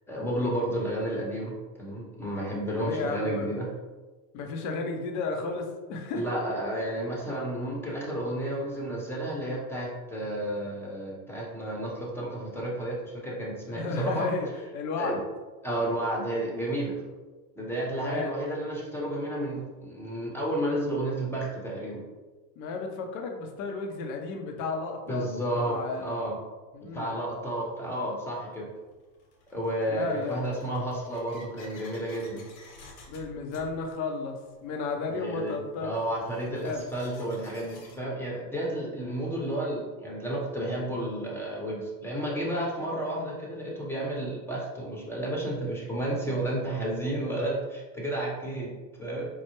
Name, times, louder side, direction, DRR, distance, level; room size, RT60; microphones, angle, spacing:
voice 1, 0.1-1.5 1.8-3.7 6.1-14.3 15.0-15.2 15.6-17.0 17.6-22.0 25.1-26.4 26.9-28.7 29.5-32.4 35.1-35.6 35.8-49.3, right 1 dB, 5° left, -4 dB, 0.7 m, -31 dB
voice 2, 2.8-3.5 4.3-6.4 13.7-14.5 14.7-15.2 18.0-18.3 22.6-26.2 26.7-27.1 29.9-30.4 33.1-34.4 34.6-35.9 36.6-36.9, left 4 dB, 40° left, 3 dB, 0.6 m, -33 dB
sound 1, 27.6-27.7 28.5-38.0, left 2 dB, 65° left, 1.0 m, -53 dB
4.6 x 2.1 x 2.9 m, 1.3 s
hypercardioid pair, 110°, 49 cm